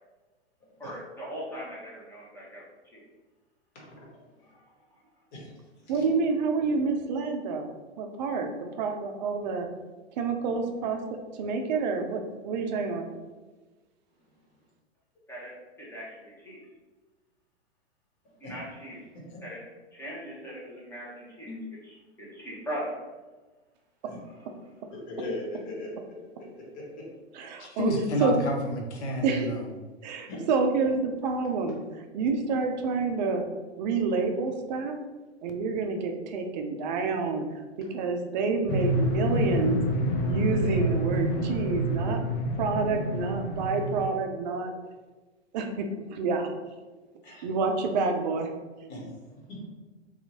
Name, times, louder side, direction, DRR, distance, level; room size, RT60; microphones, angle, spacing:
voice 1, 0.8-2.6 2.9-3.0 15.3-15.5 15.8-16.6 18.4-19.0 19.4-19.6 19.9-21.5 21.9-22.9, equal, 5° left, -7 dB, 0.8 m, -39 dB
voice 2, 3.7-4.1 5.3-5.5 5.8-6.0 18.4-18.5 19.1-19.4 21.4-21.6 24.0-24.2 25.1-25.9 26.7-27.0 30.3-30.4 47.2-47.4 48.9-49.0 49.5-49.6, left 2 dB, 45° left, -3 dB, 1.2 m, -39 dB
voice 3, 5.9-9.7 10.2-11.0 11.4-13.1 27.3-27.9 28.2-28.3 29.2-29.5 30.0-33.4 33.8-35.0 35.4-37.5 37.9-39.8 40.2-42.3 42.6-44.7 45.5-46.5 47.4-48.5, right 4 dB, 40° right, 5 dB, 0.4 m, -28 dB
voice 4, 27.4-29.7, left 1 dB, 75° left, 1 dB, 0.8 m, -30 dB
sound 1, 38.7-44.0, equal, 30° left, 0.4 m, -28 dB
2.8 x 2.3 x 2.8 m, 1.3 s
figure-of-eight pair, 110°, 34 cm